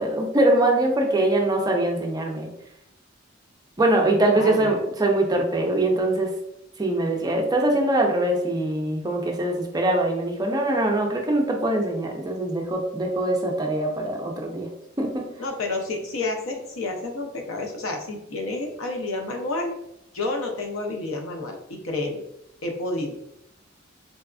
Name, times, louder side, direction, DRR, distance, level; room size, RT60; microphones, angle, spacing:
voice 1, 0.0-2.5 3.8-6.3 6.8-14.7 15.0-15.3, right 1 dB, 20° right, 1 dB, 0.4 m, -23 dB
voice 2, 4.3-4.8 15.4-19.7 20.1-22.2 22.6-23.1, left 2 dB, 90° left, 2 dB, 0.6 m, -30 dB
4.0 x 2.4 x 2.3 m, 0.81 s
head